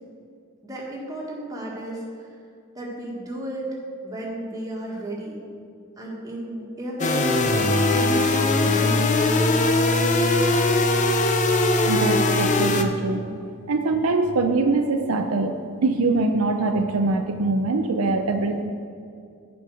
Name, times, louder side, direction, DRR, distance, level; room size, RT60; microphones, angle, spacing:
voice 1, 0.6-2.3 2.7-3.7 4.0-5.4 6.0-9.0, right 1 dB, 15° right, -3 dB, 1.6 m, -34 dB
sound 1, 7.0-12.8, left 2 dB, 35° left, 0.5 m, -20 dB
voice 2, 11.8-13.3 13.7-18.6, right 3 dB, 75° right, 6 dB, 0.6 m, -23 dB
9.3 x 5.3 x 6.2 m, 2.3 s
head